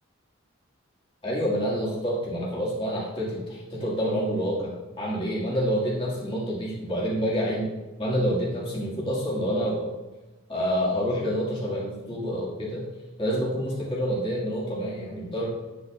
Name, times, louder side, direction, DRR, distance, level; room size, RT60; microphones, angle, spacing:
voice 1, 1.2-7.7 8.0-9.9 10.5-12.8 13.2-15.5, equal, 25° left, -6 dB, 2.1 m, -27 dB
9.7 x 7.9 x 2.5 m, 1.1 s
head